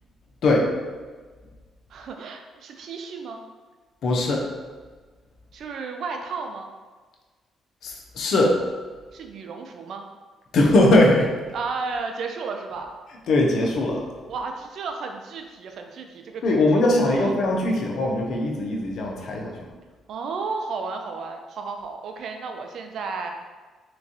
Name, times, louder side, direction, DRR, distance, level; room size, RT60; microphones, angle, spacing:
voice 1, 1.9-3.4 5.5-6.7 9.1-10.1 11.5-12.9 14.3-17.3 20.1-23.3, right 4 dB, 65° right, 4 dB, 0.4 m, -33 dB
voice 2, 4.0-4.4 7.8-8.5 10.5-11.3 13.3-14.0 16.4-19.6, left 1 dB, 70° left, 0 dB, 0.7 m, -20 dB
3.4 x 3.0 x 2.7 m, 1.4 s
cardioid pair, 90°, 0 cm